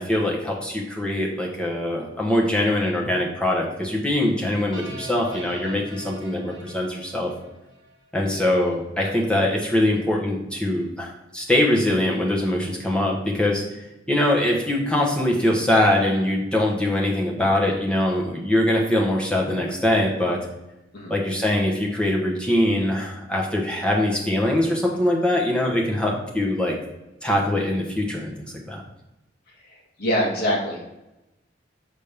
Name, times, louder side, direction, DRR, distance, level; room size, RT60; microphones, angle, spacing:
voice 1, 0.0-7.3 8.1-20.4 21.1-26.8 27.2-28.3 28.7-28.8, left 1 dB, 5° left, -2 dB, 1.0 m, -22 dB
sound 1, 4.7-8.0, right 1 dB, 25° left, 2.2 m, -42 dB
voice 2, 30.0-30.9, equal, 55° left, -2 dB, 1.6 m, -24 dB
6.7 x 4.2 x 3.4 m, 0.96 s
head